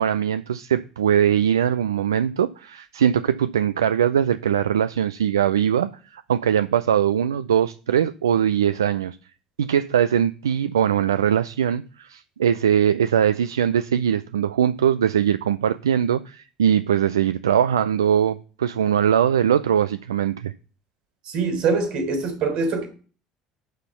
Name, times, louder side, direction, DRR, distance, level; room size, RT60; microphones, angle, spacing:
voice 1, 0.0-9.2 9.6-20.5, right 9 dB, 85° right, 0.4 m, -21 dB
voice 2, 21.3-22.9, right 4 dB, 60° right, 3.9 m, -23 dB
11.5 x 4.3 x 6.8 m
hypercardioid pair, 65°, 2 cm